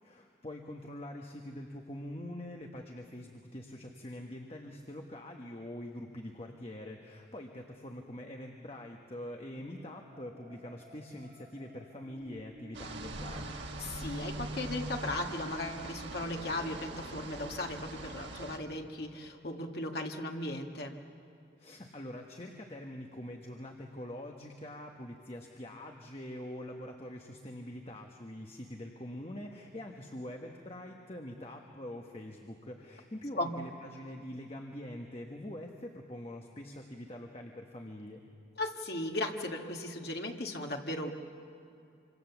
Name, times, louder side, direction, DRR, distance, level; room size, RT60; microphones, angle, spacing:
voice 1, 0.0-13.5 21.6-38.2, left 1 dB, 30° left, 2 dB, 1.3 m, -44 dB
sound 1, 9.6-18.7, right 1 dB, 40° right, 3.4 m, -48 dB
sound 2, 12.7-18.6, right 2 dB, 85° right, 2.0 m, -44 dB
voice 2, 13.8-21.0 33.4-33.5 38.6-41.1, left 1 dB, 60° left, 2 dB, 1.9 m, -37 dB
26.0 x 26.0 x 7.2 m, 2.6 s
head